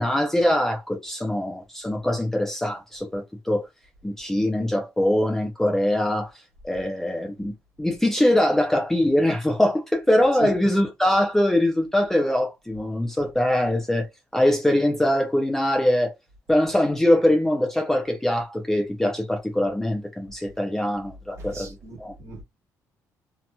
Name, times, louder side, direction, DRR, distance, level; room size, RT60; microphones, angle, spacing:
voice 1, 0.0-3.7 4.0-6.3 6.6-7.5 7.8-14.1 14.3-16.1 16.5-22.1, left 1 dB, 5° left, 0.5 m, -22 dB
voice 2, 21.4-22.4, right 4 dB, 50° right, 1.2 m, -36 dB
2.8 x 2.7 x 2.2 m
cardioid pair, 150°, 6 cm